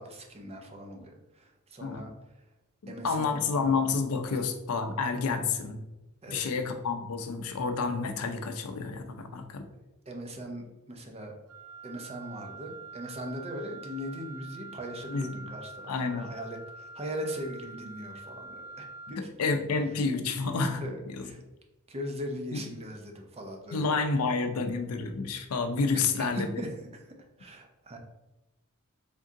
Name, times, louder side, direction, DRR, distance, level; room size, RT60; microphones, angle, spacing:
voice 1, 0.0-2.1 2.9-3.7 4.3-4.4 6.2-6.5 10.1-11.3 11.8-19.3 20.8-21.4 21.9-24.0 25.9-28.0, equal, 30° right, 2 dB, 0.6 m, -40 dB
voice 2, 2.8-5.8 6.3-9.7 15.1-15.3 15.9-16.3 19.2-20.8 21.1-21.2 22.5-22.6 23.7-26.5, left 4 dB, 75° left, 6 dB, 0.5 m, -29 dB
Wind instrument woodwind instrument, 11.5-19.3, right 3 dB, 75° right, 0.4 m, -46 dB
3.6 x 2.7 x 3.6 m, 0.98 s
head